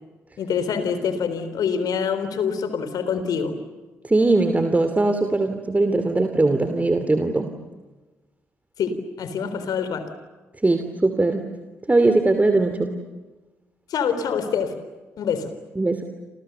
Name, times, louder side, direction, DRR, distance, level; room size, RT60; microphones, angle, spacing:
voice 1, 0.4-3.6 8.8-10.1 13.9-14.7 15.2-15.5, left 6 dB, 60° left, 10 dB, 3.8 m, -25 dB
voice 2, 4.0-7.5 10.6-11.4 11.9-12.9 15.8-16.0, right 2 dB, 20° right, 7 dB, 2.9 m, -20 dB
30.0 x 28.0 x 6.9 m, 1.2 s
figure-of-eight pair, 40°, 7 cm